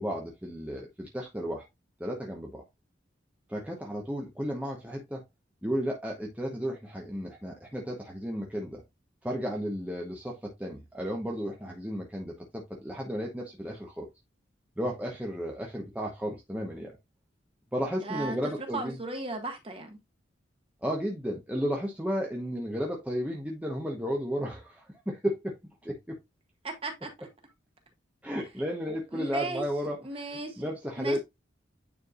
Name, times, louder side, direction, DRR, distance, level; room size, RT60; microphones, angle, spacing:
voice 1, 0.0-1.6 2.0-2.6 3.5-5.2 5.6-8.8 9.2-14.1 14.8-17.0 17.7-19.0 20.8-25.6 25.8-26.1 28.2-30.0 30.6-31.2, equal, 10° right, 1.0 m, -33 dB
voice 2, 18.0-18.4 18.7-20.0 26.6-27.1 29.1-29.6 30.0-30.7 31.0-31.2, right 2 dB, 30° right, 1.6 m, -36 dB
9.4 x 4.6 x 2.4 m
head